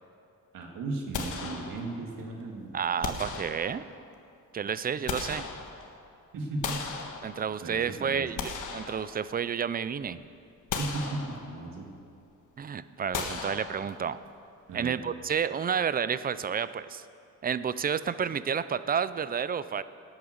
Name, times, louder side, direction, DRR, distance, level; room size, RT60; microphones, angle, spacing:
voice 1, 0.5-2.8 6.3-6.8 7.6-8.4 10.8-11.9 14.7-15.0, right 2 dB, 90° right, 1 dB, 2.1 m, -36 dB
sound 1, 1.1-2.2 3.0-4.1 4.7-6.1 6.6-7.7 8.2-9.6 10.0-10.2 10.7-11.8 13.1-14.3, left 5 dB, 65° left, 1.5 m, -37 dB
voice 2, 2.7-3.8 4.5-5.5 7.2-10.2 12.6-14.2 14.7-17.0 17.4-19.8, right 7 dB, 30° right, 15 dB, 0.4 m, -30 dB
18.0 x 8.9 x 6.5 m, 2.5 s
cardioid pair, 135°, 33 cm